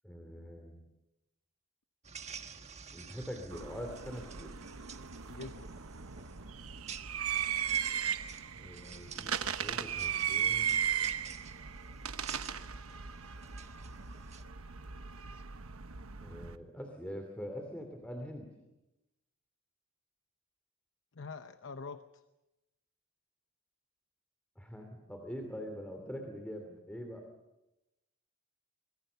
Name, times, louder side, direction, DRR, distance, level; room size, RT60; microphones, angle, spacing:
voice 1, 0.0-0.9 2.9-4.5 8.5-10.8 16.2-18.5 24.6-27.3, equal, 5° left, 3 dB, 2.7 m, -44 dB
sound 1, 2.0-14.4, right 6 dB, 30° right, 1.4 m, -51 dB
sound 2, 3.5-16.6, right 8 dB, 85° right, 1.1 m, -37 dB
voice 2, 5.3-5.7 21.1-22.2, left 4 dB, 60° left, 9 dB, 0.9 m, -45 dB
25.5 x 22.0 x 7.0 m, 0.96 s
head